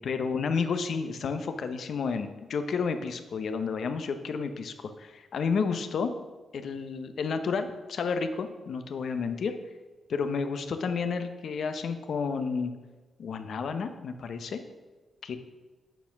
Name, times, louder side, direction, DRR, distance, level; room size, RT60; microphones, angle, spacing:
voice 1, 0.0-6.1 6.5-9.6 10.1-12.7 13.2-14.6 15.2-15.4, left 5 dB, 70° left, 8 dB, 0.7 m, -31 dB
8.0 x 4.4 x 5.9 m, 1.2 s
cardioid pair, 90°, 0 cm